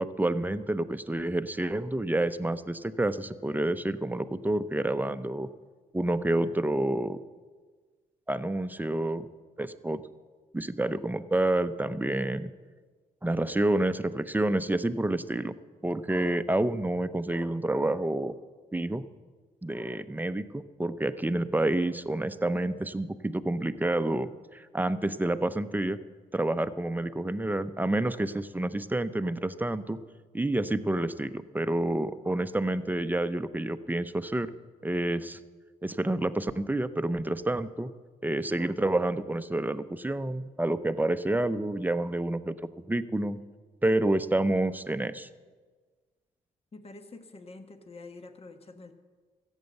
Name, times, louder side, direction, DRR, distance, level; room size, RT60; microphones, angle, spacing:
voice 1, 0.0-5.5 5.9-7.2 8.3-9.3 9.6-10.0 10.5-12.5 13.2-15.5 15.8-18.3 18.7-19.0 19.6-26.0 26.3-30.0 30.3-34.5 34.8-35.4 35.8-37.9 38.2-42.5 42.9-43.4 43.8-45.3, right 1 dB, 10° right, 12 dB, 0.7 m, -28 dB
voice 2, 46.7-48.9, left 3 dB, 40° left, 7 dB, 1.3 m, -47 dB
14.0 x 8.2 x 7.9 m, 1.5 s
supercardioid pair, 60°, 16 cm